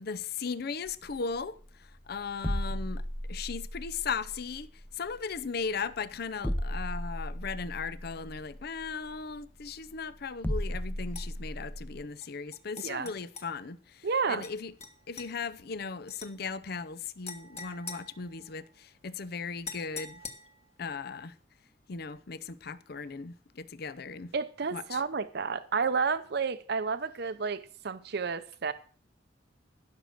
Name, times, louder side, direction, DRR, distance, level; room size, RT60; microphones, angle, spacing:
voice 1, 0.0-4.7 4.9-14.7 15.1-20.2 20.8-21.3 21.9-24.3 24.7-25.0, left 5 dB, 55° left, 0.6 m, -37 dB
sound 1, 0.9-12.0, equal, 10° left, 0.6 m, -37 dB
sound 2, 11.1-11.3 12.2-13.5 14.4-14.5 14.8-15.3 16.1-16.3 17.2-18.7 19.6-20.7, left 5 dB, 35° left, 1.6 m, -44 dB
voice 2, 14.0-14.4 24.3-28.7, right 5 dB, 60° right, 0.7 m, -31 dB
15.0 x 6.5 x 6.6 m
head